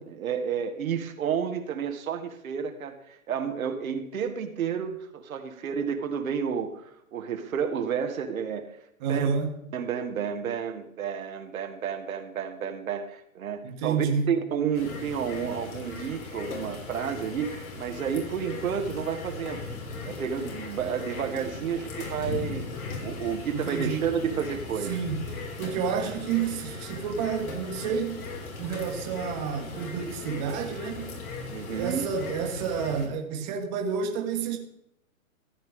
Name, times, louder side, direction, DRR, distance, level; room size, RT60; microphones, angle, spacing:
voice 1, 0.2-8.7 9.1-9.3 9.7-19.7 20.0-22.6 23.0-25.0 31.5-32.1, right 7 dB, 75° right, 5 dB, 1.6 m, -31 dB
voice 2, 9.0-9.6 13.6-14.3 23.5-24.0 24.9-25.2 25.6-28.3 28.6-31.2 31.7-34.6, right 6 dB, 30° right, 3 dB, 1.4 m, -29 dB
sound 1, 14.7-33.1, left 3 dB, 75° left, 3.9 m, -38 dB
14.5 x 8.1 x 3.6 m, 0.76 s
hypercardioid pair, 150°, 42 cm